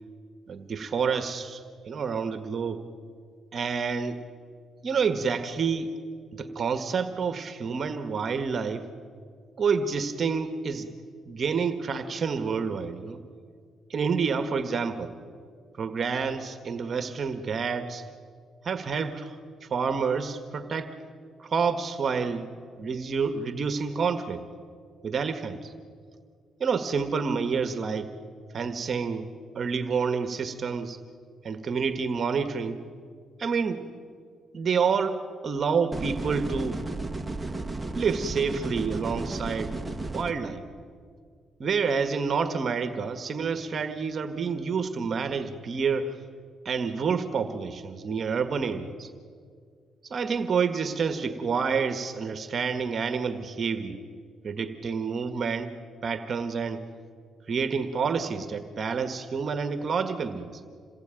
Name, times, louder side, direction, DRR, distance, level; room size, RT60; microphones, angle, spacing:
voice 1, 0.5-2.8 3.5-4.2 4.8-5.9 6.3-8.9 9.6-10.9 11.3-13.2 13.9-15.1 15.8-18.0 18.6-20.9 21.4-22.5 22.8-24.4 25.0-25.7 26.6-28.1 28.5-29.3 29.5-31.0 31.4-32.8 33.4-33.9 34.5-36.8 37.9-39.8 40.1-40.6 41.6-46.2 46.6-49.1 50.0-54.0 54.4-55.7 56.0-56.9 57.5-60.6, right 5 dB, 50° right, 8 dB, 1.5 m, -28 dB
sound 1, 35.9-40.3, right 2 dB, 10° right, 2.1 m, -33 dB
27.5 x 20.0 x 9.2 m, 2.2 s
cardioid pair, 90°, 0 cm